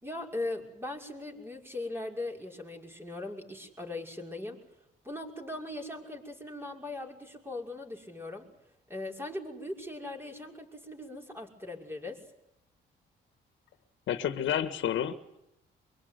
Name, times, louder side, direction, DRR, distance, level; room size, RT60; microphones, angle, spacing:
voice 1, 0.0-4.6 5.0-8.5 8.9-12.2, left 2 dB, 10° right, 1 dB, 6.1 m, -39 dB
voice 2, 14.1-15.4, left 10 dB, 75° left, 10 dB, 1.8 m, -30 dB
24.5 x 23.0 x 9.6 m, 0.82 s
cardioid pair, 90°, 20 cm